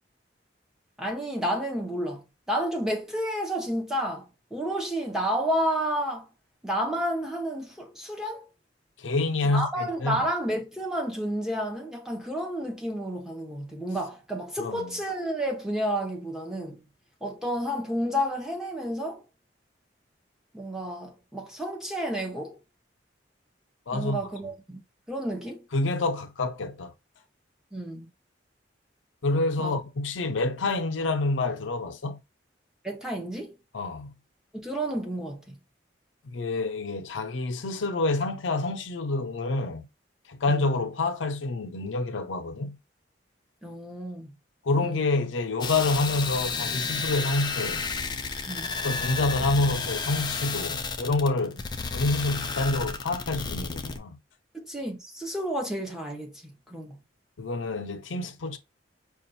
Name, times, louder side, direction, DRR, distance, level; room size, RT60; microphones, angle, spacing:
voice 1, 1.0-6.3 6.6-8.5 9.4-16.8 17.2-19.2 20.5-22.6 23.9-24.8 25.1-25.6 27.7-28.1 29.6-29.7 32.8-33.6 34.5-35.6 40.5-40.6 43.6-44.4 44.8-45.1 48.5-48.8 54.5-57.0, equal, 5° right, 0.9 m, -31 dB
voice 2, 9.0-10.2 14.6-15.0 23.9-24.2 25.7-26.9 29.2-32.2 33.7-34.1 36.3-39.9 40.3-42.8 44.7-47.8 48.8-51.6 51.9-54.2 57.4-58.6, left 2 dB, 90° left, 0.6 m, -27 dB
sound 1, 45.6-54.0, left 4 dB, 25° left, 0.4 m, -32 dB
5.1 x 2.4 x 2.7 m
head